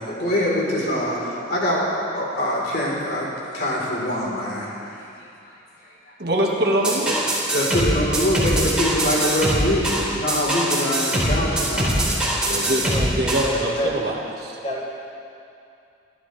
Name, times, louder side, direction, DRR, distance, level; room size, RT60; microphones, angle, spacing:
voice 1, 0.0-3.3 3.5-5.1 5.5-5.6 5.8-5.9 7.5-12.1, equal, 55° left, -5 dB, 3.8 m, -24 dB
voice 2, 6.2-7.2 12.5-14.6, right 1 dB, 60° right, -1 dB, 1.6 m, -24 dB
sound 1, 6.8-13.5, right 1 dB, 5° right, 3.5 m, -22 dB
voice 3, 13.4-13.9 14.6-14.8, equal, 35° left, -5 dB, 2.7 m, -28 dB
27.0 x 12.5 x 3.3 m, 2.6 s
head